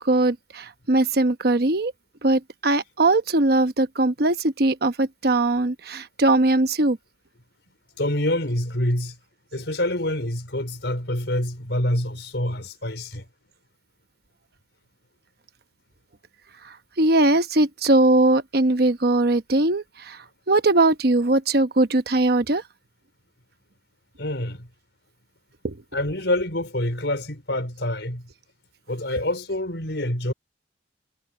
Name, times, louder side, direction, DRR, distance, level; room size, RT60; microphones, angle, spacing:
voice 1, 0.0-1.9 2.2-7.0 16.6-22.6 25.6-25.8, right 2 dB, 60° right, 1.0 m, -20 dB
voice 2, 8.0-9.2 9.5-13.2 24.2-24.7 25.9-28.3 28.9-30.3, left 1 dB, 75° left, 4.6 m, -26 dB
head